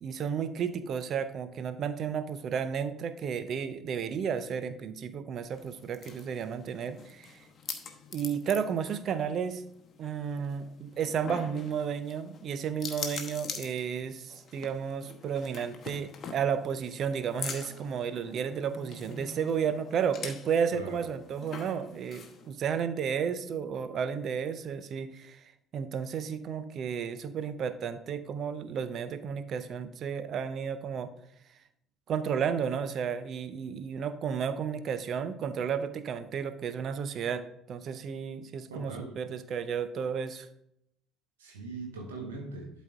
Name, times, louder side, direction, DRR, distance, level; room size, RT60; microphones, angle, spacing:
voice 1, 0.0-7.4 8.1-9.6 10.0-25.4 25.7-31.1 32.1-40.5, right 7 dB, 45° right, 12 dB, 0.6 m, -32 dB
sound 1, 5.5-22.5, left 5 dB, 40° left, 1.0 m, -44 dB
voice 2, 38.7-39.1 41.4-42.7, right 3 dB, 70° right, 1 dB, 1.2 m, -40 dB
12.0 x 4.2 x 3.6 m, 0.76 s
figure-of-eight pair, 55°, 0 cm